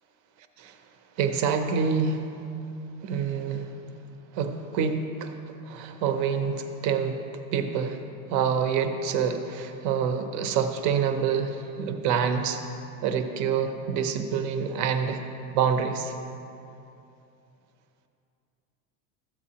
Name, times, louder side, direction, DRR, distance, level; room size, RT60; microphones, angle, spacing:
voice 1, 1.2-2.2 3.0-3.7 4.3-5.3 5.7-7.2 7.5-8.0 8.3-12.6 13.0-15.2 15.5-16.2, right 6 dB, 40° right, 7 dB, 0.7 m, -26 dB
13.0 x 8.6 x 2.8 m, 2.7 s
supercardioid pair, 155°, 44 cm